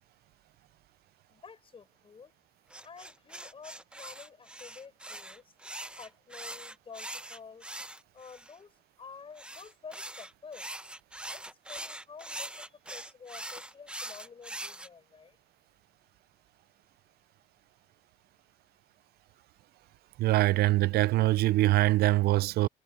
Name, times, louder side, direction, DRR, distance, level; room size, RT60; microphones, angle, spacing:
voice 1, 1.3-2.4 2.8-5.5 6.0-7.7 8.1-10.8 11.2-15.4, left 5 dB, 30° left, 6.3 m, -50 dB
sound 1, 2.7-8.5 9.4-14.9, right 1 dB, 5° right, 1.0 m, -42 dB
voice 2, 20.2-22.7, right 17 dB, 70° right, 0.4 m, -23 dB
cardioid pair, 110°, 17 cm